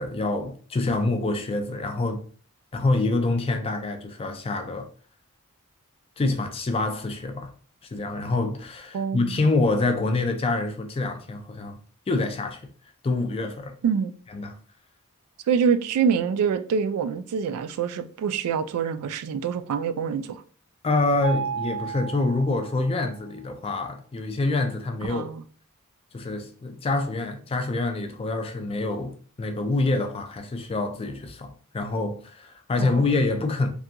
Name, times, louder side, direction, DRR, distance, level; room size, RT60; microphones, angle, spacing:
voice 1, 0.0-2.2 2.7-4.9 6.2-7.5 7.9-11.8 12.1-12.6 13.0-13.7 14.3-14.5 20.8-25.3 26.1-33.7, left 2 dB, 25° left, 0.3 m, -26 dB
voice 2, 8.9-9.4 13.8-14.1 15.5-20.4 25.1-25.4 32.8-33.4, right 6 dB, 90° right, 0.3 m, -26 dB
Mallet percussion, 21.2-23.2, right 7 dB, 30° right, 0.6 m, -33 dB
2.4 x 2.3 x 2.7 m
head